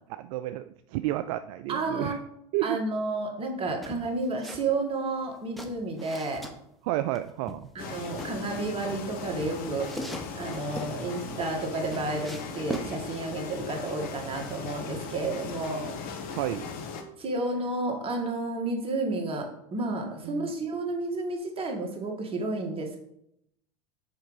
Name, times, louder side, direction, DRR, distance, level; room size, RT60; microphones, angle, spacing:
voice 1, 0.1-2.2 2.5-2.8 6.8-7.7 10.9-11.4 16.3-16.7 20.2-20.5, right 14 dB, 60° right, 11 dB, 0.4 m, -31 dB
voice 2, 1.7-2.2 2.6-6.5 7.8-9.9 10.3-16.0 17.2-23.0, right 2 dB, 30° right, 1 dB, 2.0 m, -31 dB
sound 1, 3.8-4.7 5.0-6.5 7.1-8.3 9.0-10.9 11.4-12.9, right 1 dB, ahead, 1.0 m, -39 dB
sound 2, 7.8-17.0, left 5 dB, 50° left, 1.3 m, -38 dB
6.5 x 4.5 x 5.6 m, 0.76 s
hypercardioid pair, 95°, 19 cm